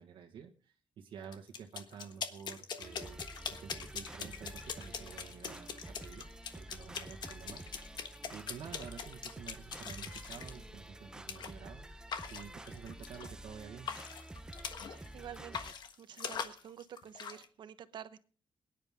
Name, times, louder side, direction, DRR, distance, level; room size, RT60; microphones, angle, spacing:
voice 1, 0.0-3.3 3.6-11.9 12.3-13.9, right 7 dB, 85° right, 1 dB, 1.5 m, -50 dB
sound 1, 1.3-10.6 11.3-11.5 12.1-13.5 13.8-15.1 15.3-17.4, left 6 dB, 60° left, 1.4 m, -43 dB
sound 2, 2.8-15.7, right 1 dB, 10° right, 0.7 m, -49 dB
voice 2, 14.9-18.2, right 9 dB, 65° right, 11 dB, 1.0 m, -49 dB
22.0 x 10.5 x 3.6 m, 0.38 s
wide cardioid pair, 150°, 8 cm